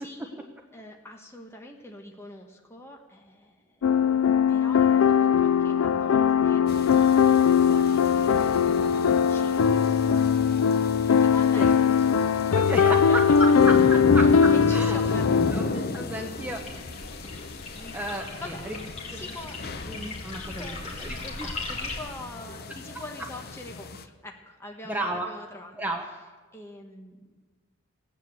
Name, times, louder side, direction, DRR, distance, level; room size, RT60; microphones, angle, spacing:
voice 1, 0.0-3.9 4.5-6.7 7.6-8.2 9.3-9.6 9.8-10.5 10.8-12.7 14.2-16.1 17.7-17.9 18.3-18.7 19.1-20.0 20.4-20.9 21.2-25.8 26.5-27.3, left 1 dB, 10° left, 1 dB, 1.2 m, -44 dB
sound 1, 3.8-15.5, left 7 dB, 85° left, 0.4 m, -20 dB
sound 2, 6.7-24.0, left 3 dB, 50° left, 0.7 m, -35 dB
voice 2, 12.5-15.0 15.5-16.6 17.9-18.2 18.6-18.8 19.1-19.2 19.9-21.2 24.9-25.3 25.7-26.0, right 1 dB, 10° right, 1 dB, 1.0 m, -32 dB
sound 3, 16.4-22.0, left 3 dB, 35° left, 3.1 m, -39 dB
17.0 x 9.8 x 7.9 m, 1.4 s
head